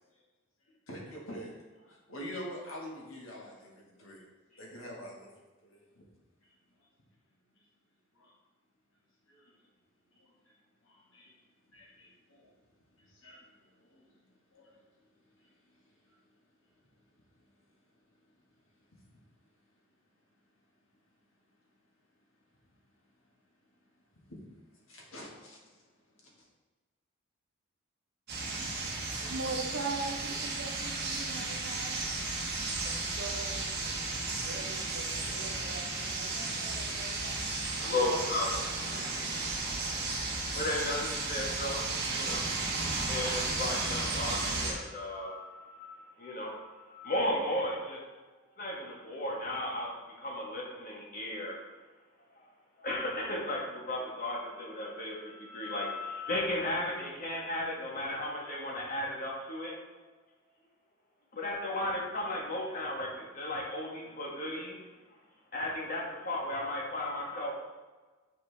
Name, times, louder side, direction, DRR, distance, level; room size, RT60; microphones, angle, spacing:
voice 1, 0.9-1.5 1.8-4.2 4.5-5.3 5.6-6.0 6.4-6.5 8.1-8.3 9.3-9.6 10.1-10.5 10.8-11.4 11.7-12.5 13.0-14.1 14.5-14.8 15.3-15.7 16.1-16.2 24.3-24.4 24.9-25.8 26.2-26.4, equal, 75° left, -2 dB, 1.5 m, -47 dB
sound 1, 28.3-44.7, right 3 dB, 50° right, 1.4 m, -34 dB
voice 2, 29.2-32.0 33.0-33.7 34.4-37.5 38.4-39.2, right 3 dB, 90° right, 3 dB, 0.9 m, -41 dB
voice 3, 37.7-42.4 43.1-46.6 46.9-48.0 48.6-49.9 50.2-51.5 52.8-59.7 61.3-64.8 65.5-67.5, left 1 dB, 45° left, -2 dB, 1.3 m, -35 dB
7.2 x 4.4 x 3.3 m, 1.3 s
head